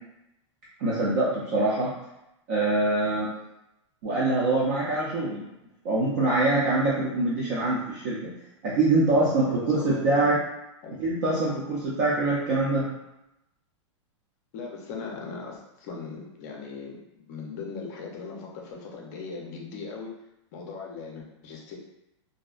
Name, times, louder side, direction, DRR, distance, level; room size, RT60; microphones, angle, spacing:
voice 1, 0.8-1.9 2.5-3.3 4.0-5.5 5.8-8.3 8.6-10.4 11.0-12.9, right 2 dB, 40° right, -6 dB, 0.5 m, -24 dB
voice 2, 9.5-10.2 10.8-11.0 14.5-20.1 20.5-21.8, left 4 dB, 35° left, -1 dB, 0.5 m, -39 dB
2.6 x 2.0 x 2.3 m, 0.88 s
supercardioid pair, 165°, 16 cm